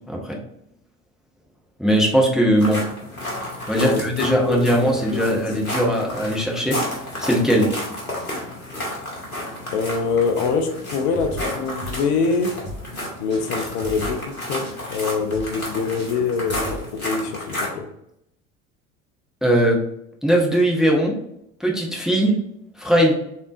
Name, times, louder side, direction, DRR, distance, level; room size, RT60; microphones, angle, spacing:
voice 1, 0.1-0.4 1.8-2.8 3.7-7.7 19.4-19.8 20.2-21.2 21.6-22.3 22.8-23.1, equal, ahead, -1 dB, 0.6 m, -19 dB
sound 1, 2.6-17.7, left 1 dB, 90° left, 0.9 m, -32 dB
voice 2, 3.8-4.7 5.1-5.3 9.7-12.6 13.2-17.9, left 4 dB, 50° left, 6 dB, 0.5 m, -24 dB
sound 2, 11.0-12.1 12.3-12.4 12.6-13.0 13.3-13.4 13.6-14.4 14.6-14.7 15.0-15.1 15.3-15.7 16.0-16.8, equal, 25° right, 1.4 m, -35 dB
3.4 x 2.7 x 2.4 m, 0.77 s
figure-of-eight pair, 65°, 41 cm